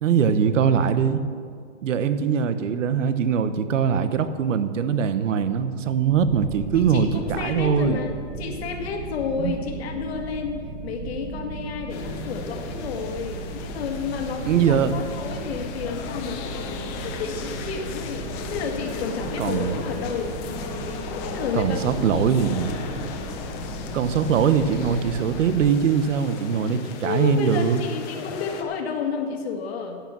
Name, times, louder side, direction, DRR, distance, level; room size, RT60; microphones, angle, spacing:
voice 1, 0.0-1.2 1.8-8.0 9.4-9.5 14.5-15.0 19.4-19.8 21.5-22.8 23.9-27.8, right 7 dB, 85° right, 12 dB, 1.1 m, -22 dB
sound 1, 6.1-25.7, right 3 dB, 45° right, 2.4 m, -36 dB
voice 2, 6.7-16.4 16.8-20.4 21.3-22.5 27.0-30.0, left 6 dB, 55° left, 3 dB, 2.0 m, -31 dB
sound 2, 11.9-28.6, left 6 dB, 20° left, 0.7 m, -36 dB
11.5 x 8.8 x 7.4 m, 2.1 s
supercardioid pair, 170°, 37 cm